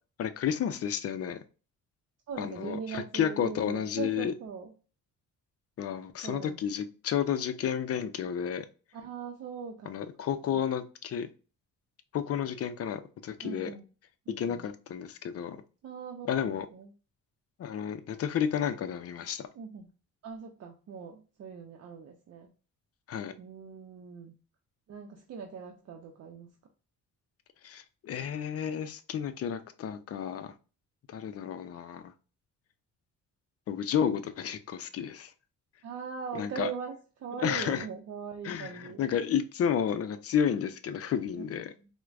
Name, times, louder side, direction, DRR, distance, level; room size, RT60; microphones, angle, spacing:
voice 1, 0.2-1.4 2.4-4.3 5.8-8.7 9.9-11.3 12.1-13.7 14.3-15.6 16.3-16.7 17.6-19.5 23.1-23.3 27.6-30.5 31.1-32.1 33.7-35.3 36.3-36.7 37.4-37.8 38.4-41.7, left 8 dB, 50° left, 11 dB, 0.5 m, -31 dB
voice 2, 2.3-4.7 6.2-6.6 8.9-10.1 13.4-13.9 14.3-14.6 15.8-16.9 19.6-19.9 20.2-22.5 23.4-24.3 24.9-26.5 35.8-39.0 41.8-41.9, right 6 dB, 55° right, 2 dB, 0.6 m, -41 dB
4.4 x 2.2 x 2.4 m, 0.35 s
cardioid pair, 90°, 30 cm